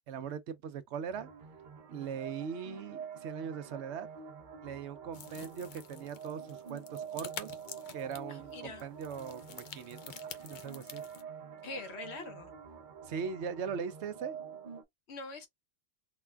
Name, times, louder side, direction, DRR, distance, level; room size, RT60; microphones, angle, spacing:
voice 1, 0.1-1.3 1.9-4.1 4.6-7.5 7.9-10.1 10.4-11.0 13.0-14.4, right 7 dB, 80° right, 1.0 m, -40 dB
sound 1, 1.1-14.8, right 7 dB, 50° right, 0.9 m, -47 dB
sound 2, 5.1-11.2, left 7 dB, 55° left, 0.7 m, -49 dB
voice 2, 8.3-8.9 11.6-12.5 15.1-15.5, left 3 dB, 75° left, 1.2 m, -44 dB
4.0 x 2.3 x 3.3 m
omnidirectional pair, 1.1 m